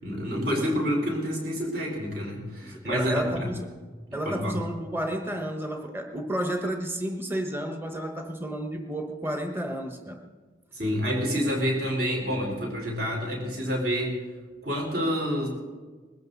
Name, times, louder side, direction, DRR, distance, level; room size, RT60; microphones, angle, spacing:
voice 1, 0.0-3.5 4.2-4.6 10.7-14.1 14.6-15.5, equal, 55° right, 0 dB, 4.4 m, -28 dB
voice 2, 2.6-3.7 4.1-10.2, right 1 dB, 10° right, 4 dB, 1.2 m, -31 dB
20.5 x 14.5 x 4.1 m, 1.4 s
head